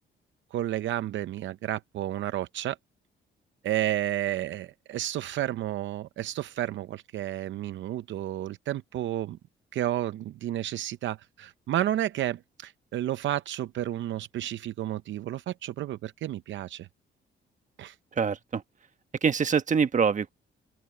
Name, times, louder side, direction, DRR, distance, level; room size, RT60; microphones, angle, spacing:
voice 1, 0.5-2.8 3.6-9.4 9.7-16.9 17.8-18.0, right 13 dB, 70° right, 0.7 m, -31 dB
voice 2, 18.1-18.6 19.2-20.3, right 6 dB, 40° right, 1.3 m, -24 dB
open air
cardioid pair, 90°, 20 cm